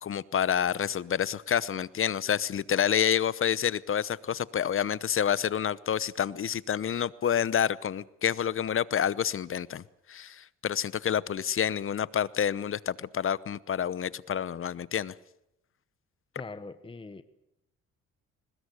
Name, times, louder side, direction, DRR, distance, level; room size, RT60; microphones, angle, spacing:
voice 1, 0.0-9.8 10.1-15.1, left 9 dB, 45° left, 19 dB, 0.9 m, -28 dB
voice 2, 16.4-17.2, left 3 dB, 15° left, 11 dB, 1.1 m, -42 dB
22.0 x 20.0 x 8.1 m, 0.84 s
cardioid pair, 90°, 30 cm